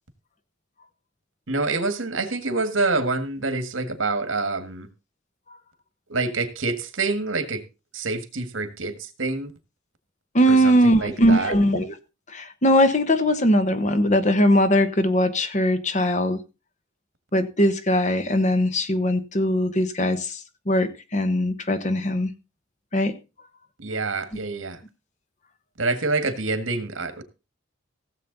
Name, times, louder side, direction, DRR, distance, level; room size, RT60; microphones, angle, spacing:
voice 1, 1.5-4.9 6.1-7.6 7.9-9.5 10.5-11.5 23.8-24.8 25.8-27.2, right 3 dB, 80° right, 1.7 m, -26 dB
voice 2, 10.3-11.9 12.3-16.4 17.3-22.3 22.9-23.1, equal, 40° left, 1.2 m, -20 dB
16.0 x 7.6 x 4.0 m
head